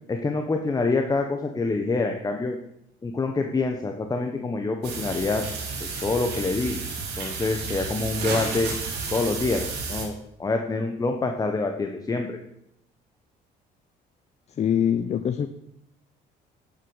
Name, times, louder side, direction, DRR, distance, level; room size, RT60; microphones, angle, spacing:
voice 1, 0.1-2.6 3.0-5.4 6.0-6.8 7.2-8.7 9.1-10.1 10.4-12.4, left 3 dB, 20° left, 4 dB, 1.3 m, -26 dB
sound 1, 4.8-10.0, right 4 dB, 75° right, 4.4 m, -32 dB
voice 2, 14.6-15.5, left 8 dB, 40° left, 9 dB, 0.8 m, -23 dB
11.0 x 8.0 x 7.3 m, 0.80 s
cardioid pair, 110°, 17 cm